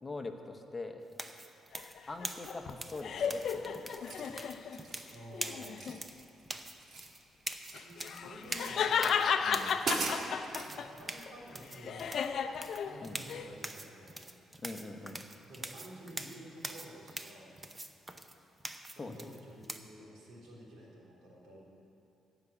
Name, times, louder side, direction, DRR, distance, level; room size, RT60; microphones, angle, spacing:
voice 1, 0.0-1.0 2.1-3.9 9.4-9.7 13.0-13.2 14.6-15.2 19.0-19.3, left 3 dB, 25° left, 5 dB, 1.0 m, -43 dB
sound 1, 1.1-19.8, right 2 dB, 20° right, 0.8 m, -44 dB
sound 2, 1.7-4.8 5.3-6.0 7.7-10.9 11.3-13.5, left 7 dB, 60° left, 0.6 m, -34 dB
sound 3, 3.1-3.5 3.9-4.3 4.7-5.1 5.8-6.4 6.7-7.9 8.5-8.9 9.4-9.5 9.8-10.7, right 4 dB, 60° right, 1.5 m, -39 dB
voice 2, 5.1-5.8 7.8-9.3 10.6-12.3 12.8-14.2 15.5-17.5 19.0-21.6, right 1 dB, 80° right, -4 dB, 3.3 m, -51 dB
15.0 x 6.0 x 8.3 m, 2.8 s
cardioid pair, 90°, 0 cm